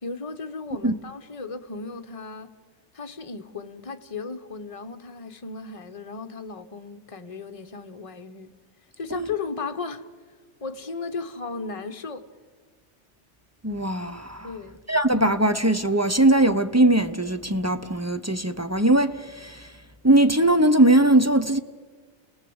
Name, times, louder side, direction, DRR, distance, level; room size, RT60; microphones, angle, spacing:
voice 1, 0.0-2.5 2.9-8.5 9.0-10.1 10.6-12.3 14.4-14.8, left 4 dB, 30° left, 1.1 m, -35 dB
voice 2, 13.6-14.5 14.9-19.7 20.0-21.6, right 1 dB, 15° right, 0.7 m, -20 dB
29.0 x 19.0 x 7.9 m
omnidirectional pair, 1.2 m